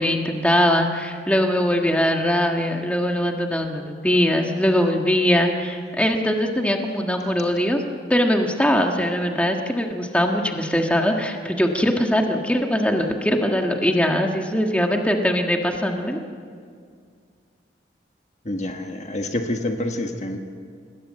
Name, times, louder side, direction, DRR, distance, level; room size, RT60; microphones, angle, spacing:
voice 1, 0.0-7.8 8.1-16.2, equal, 5° left, 2 dB, 1.6 m, -21 dB
voice 2, 18.4-20.4, left 1 dB, 40° left, 4 dB, 1.5 m, -27 dB
27.0 x 20.5 x 7.6 m, 2.1 s
head